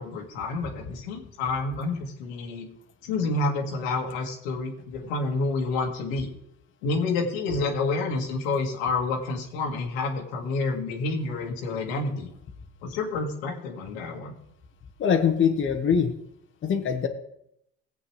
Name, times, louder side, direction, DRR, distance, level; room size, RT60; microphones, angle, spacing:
voice 1, 0.0-2.7 3.0-6.3 6.8-12.3 12.8-14.3, left 3 dB, 90° left, 1 dB, 1.8 m, -29 dB
voice 2, 15.0-16.1 16.6-17.1, left 7 dB, 40° left, 4 dB, 1.3 m, -23 dB
18.0 x 8.0 x 3.3 m, 0.79 s
supercardioid pair, 100°, 30 cm